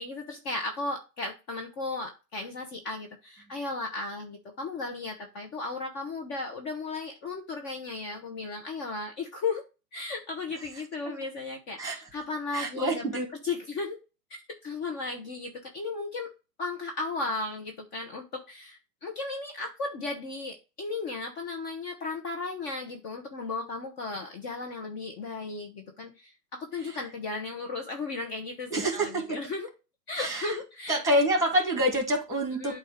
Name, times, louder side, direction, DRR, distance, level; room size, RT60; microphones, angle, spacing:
voice 1, 0.0-9.6 9.9-13.0 13.4-14.0 14.3-16.3 16.6-29.7 30.1-31.0 32.6-32.8, left 3 dB, 30° left, 3 dB, 1.2 m, -35 dB
voice 2, 12.5-13.3 26.8-27.0 28.7-29.4 30.2-30.6 30.9-32.8, right 1 dB, 5° right, 2 dB, 2.5 m, -27 dB
8.4 x 2.8 x 5.0 m, 0.29 s
hypercardioid pair, 130°, 49 cm